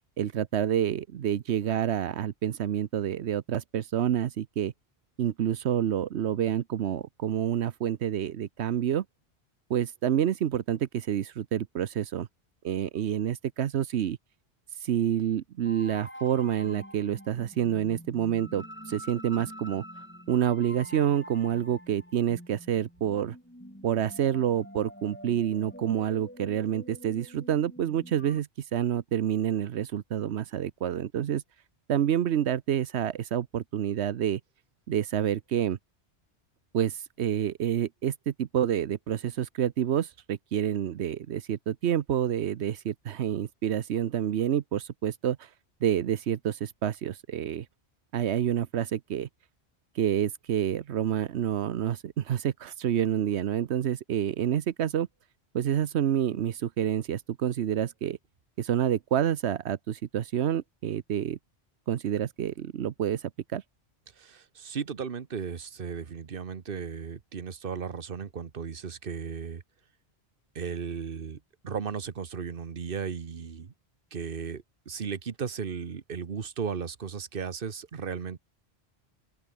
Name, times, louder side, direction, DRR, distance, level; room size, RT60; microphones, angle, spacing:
voice 1, 0.2-4.7 5.2-9.0 9.7-12.3 12.6-14.2 14.8-19.8 20.3-23.4 23.8-31.4 31.9-34.4 34.9-35.8 36.7-45.5 45.8-47.7 48.1-49.3 49.9-55.1 55.5-58.2 58.6-61.4 61.9-63.6, right 10 dB, 85° right, 1.1 m, -28 dB
sound 1, 15.6-28.4, equal, 10° left, 6.1 m, -46 dB
voice 2, 64.2-69.6 70.5-71.4 71.6-73.7 74.1-78.4, right 6 dB, 55° right, 1.4 m, -35 dB
omnidirectional pair, 1.1 m